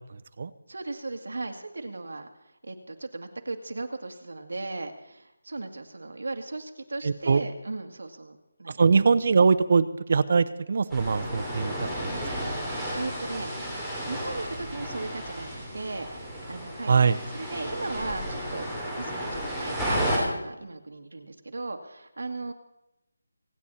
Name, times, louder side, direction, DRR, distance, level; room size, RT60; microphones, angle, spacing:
voice 1, 0.7-2.3 2.6-8.8 12.7-13.7 14.1-18.7 19.0-22.5, right 2 dB, 70° right, 4 dB, 2.1 m, -37 dB
voice 2, 7.0-7.4 8.8-11.7 16.9-17.2, right 5 dB, 35° right, 13 dB, 0.6 m, -22 dB
sound 1, 10.9-20.2, equal, ahead, 3.0 m, -33 dB
26.0 x 9.0 x 4.2 m, 0.90 s
figure-of-eight pair, 175°, 0 cm